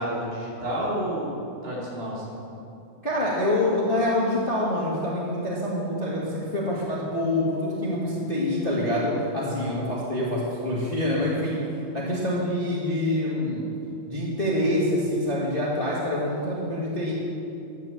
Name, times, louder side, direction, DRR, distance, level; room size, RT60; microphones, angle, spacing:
voice 1, 0.0-1.4 1.6-2.4 9.5-9.8, equal, 70° right, -6 dB, 5.1 m, -30 dB
voice 2, 3.0-11.6 11.9-13.6 14.1-17.1, left 1 dB, 20° left, -6 dB, 1.7 m, -26 dB
11.0 x 11.0 x 7.4 m, 2.7 s
omnidirectional pair, 4.3 m